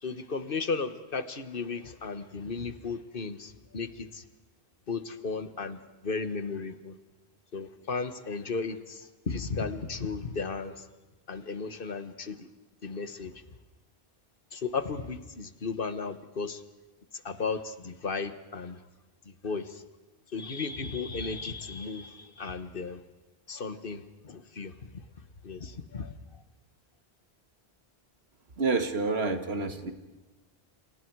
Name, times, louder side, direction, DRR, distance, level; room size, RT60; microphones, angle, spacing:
voice 1, 0.0-4.2 4.9-6.9 7.5-10.9 11.3-12.5 12.8-13.3 14.5-16.6 17.1-18.8 19.4-19.8 20.3-23.0 23.5-24.9 25.4-26.1, left 4 dB, 60° left, 12 dB, 1.5 m, -35 dB
voice 2, 28.6-29.9, right 3 dB, 85° right, 8 dB, 2.2 m, -28 dB
29.0 x 27.5 x 4.7 m, 1.2 s
omnidirectional pair, 1.0 m